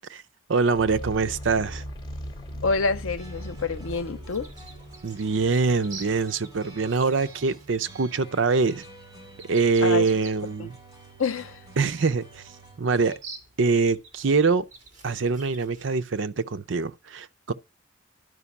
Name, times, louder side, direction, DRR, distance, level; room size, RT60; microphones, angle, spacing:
voice 1, 0.5-1.8 5.0-8.8 9.5-10.8 11.8-12.4 12.8-13.2 13.6-14.7 15.0-17.5, right 4 dB, 70° right, 0.6 m, -24 dB
sound 1, 0.7-5.9, equal, 25° left, 2.1 m, -39 dB
voice 2, 2.6-4.5 9.8-10.0 10.6-10.7 11.2-11.5, left 4 dB, 90° left, 0.7 m, -27 dB
sound 2, 3.2-13.2, right 3 dB, 20° right, 5.5 m, -49 dB
sound 3, 4.3-16.0, right 4 dB, 40° right, 2.6 m, -49 dB
11.0 x 5.2 x 7.1 m
head